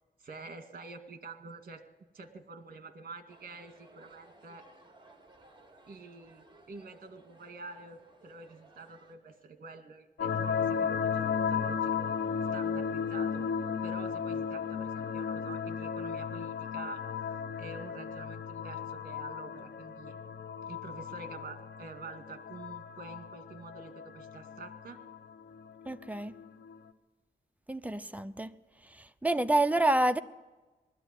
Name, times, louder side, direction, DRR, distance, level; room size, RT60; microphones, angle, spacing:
voice 1, 0.2-1.8 2.1-4.7 5.9-12.1 12.5-13.5 13.8-17.0 17.6-20.2 20.7-25.0, right 4 dB, 55° right, 8 dB, 2.2 m, -47 dB
sound 1, 3.3-9.2, right 2 dB, 25° right, 2.8 m, -59 dB
sound 2, 10.2-26.8, left 6 dB, 80° left, 1.0 m, -35 dB
voice 2, 25.9-26.3 27.7-28.5 28.9-30.2, right 2 dB, 10° right, 10 dB, 0.8 m, -28 dB
20.0 x 13.5 x 9.9 m, 1.2 s
wide cardioid pair, 105°, 18 cm